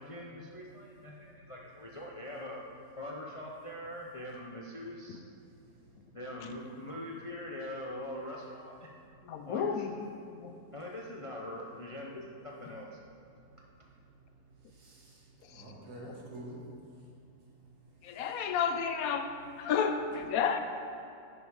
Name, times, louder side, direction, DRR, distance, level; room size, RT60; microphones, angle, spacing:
voice 1, 0.0-2.6 3.0-5.2 6.1-8.9 9.5-9.7 9.9-10.0 10.7-12.9, left 1 dB, 50° left, -2 dB, 0.3 m, -42 dB
voice 2, 1.1-1.5 5.5-6.2 9.1-9.4 10.3-10.7 13.3-18.6, right 1 dB, 85° right, -3 dB, 2.1 m, -52 dB
voice 3, 9.3-9.9 10.4-10.6 15.5-15.6 18.0-19.3 19.6-20.6, left 7 dB, 70° left, 8 dB, 1.1 m, -31 dB
10.5 x 5.3 x 4.8 m, 2.6 s
omnidirectional pair, 1.6 m